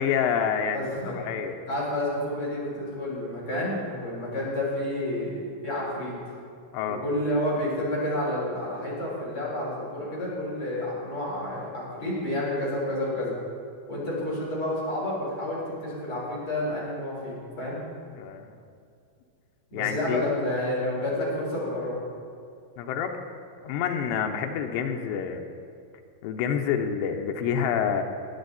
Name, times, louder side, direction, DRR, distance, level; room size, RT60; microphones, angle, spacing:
voice 1, 0.0-1.6 6.7-7.0 18.1-18.6 19.7-20.3 22.8-23.2 23.6-25.4 26.2-28.0, left 7 dB, 85° left, 4 dB, 3.0 m, -28 dB
voice 2, 0.7-1.2 1.7-6.2 6.9-13.3 13.9-17.8 19.7-22.0, left 1 dB, 30° left, -7 dB, 4.8 m, -30 dB
18.5 x 10.5 x 4.1 m, 2.4 s
omnidirectional pair, 5.1 m